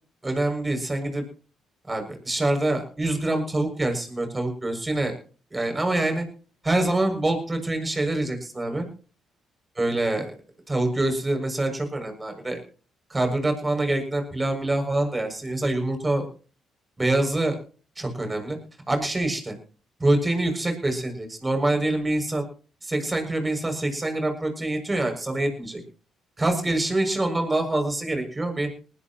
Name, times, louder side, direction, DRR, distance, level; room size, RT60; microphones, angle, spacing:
voice 1, 0.2-1.2 1.9-5.1 5.5-6.2 6.6-8.9 9.8-10.3 10.7-12.6 13.1-16.3 17.0-17.6 18.0-18.6 18.9-19.5 20.0-22.4 22.8-25.8 26.4-28.7, right 2 dB, 20° right, 4 dB, 7.1 m, -25 dB
20.5 x 18.5 x 3.1 m, 0.39 s
cardioid pair, 90°, 0 cm